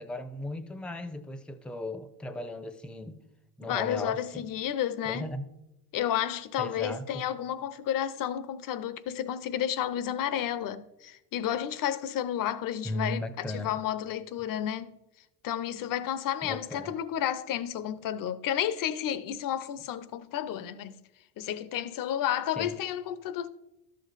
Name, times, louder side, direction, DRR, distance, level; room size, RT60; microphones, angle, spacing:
voice 1, 0.0-3.2 3.6-4.4 5.0-5.5 6.6-7.2 12.8-13.7 16.4-16.9 22.6-22.7, left 1 dB, ahead, 0.6 m, -36 dB
voice 2, 3.6-5.3 5.9-15.0 15.4-21.0 21.4-23.5, left 10 dB, 45° left, 0.7 m, -31 dB
12.5 x 5.3 x 4.1 m
hypercardioid pair, 70°, 48 cm